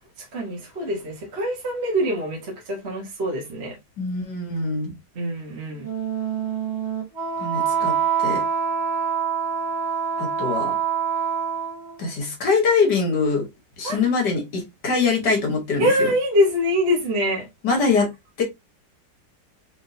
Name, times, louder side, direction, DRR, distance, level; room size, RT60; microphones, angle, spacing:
voice 1, 0.3-3.8 5.1-5.9 13.8-14.0 15.8-17.5, equal, 40° right, 1.4 m, -24 dB
voice 2, 4.0-5.0 7.4-8.4 10.2-10.8 12.0-13.5 13.8-16.1 17.6-18.1 18.4-18.5, left 4 dB, 70° left, 2.2 m, -23 dB
Wind instrument woodwind instrument, 5.8-12.0, right 7 dB, 75° right, 2.0 m, -25 dB
4.6 x 3.7 x 2.8 m
omnidirectional pair, 1.9 m